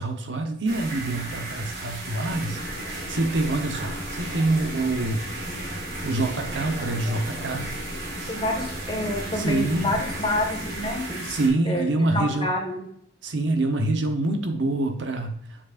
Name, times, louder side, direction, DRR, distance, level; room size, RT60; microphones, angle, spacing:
voice 1, 0.0-2.6 2.9-5.3 6.0-7.7 9.3-10.0 11.3-12.5 13.2-15.6, right 2 dB, 85° right, 6 dB, 0.9 m, -26 dB
sound 1, 0.7-11.5, right 2 dB, 60° right, 1.9 m, -35 dB
sound 2, 2.3-11.0, equal, 55° left, 1.5 m, -38 dB
voice 2, 8.3-11.4 11.6-11.9 12.1-12.9, left 1 dB, 30° left, 1 dB, 1.6 m, -28 dB
7.4 x 7.1 x 2.5 m, 0.65 s
head